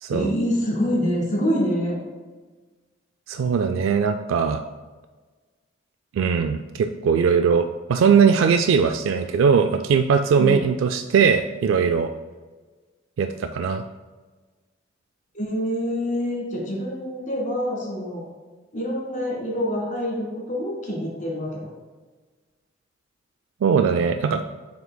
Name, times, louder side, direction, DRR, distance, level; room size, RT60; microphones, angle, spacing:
voice 1, 0.1-2.0 10.4-10.6 15.3-18.2 18.7-21.7, equal, 40° left, -3 dB, 1.8 m, -26 dB
voice 2, 3.3-4.6 6.1-12.1 13.2-13.8 23.6-24.4, right 6 dB, 80° right, 8 dB, 0.3 m, -20 dB
7.3 x 5.8 x 2.2 m, 1.3 s
head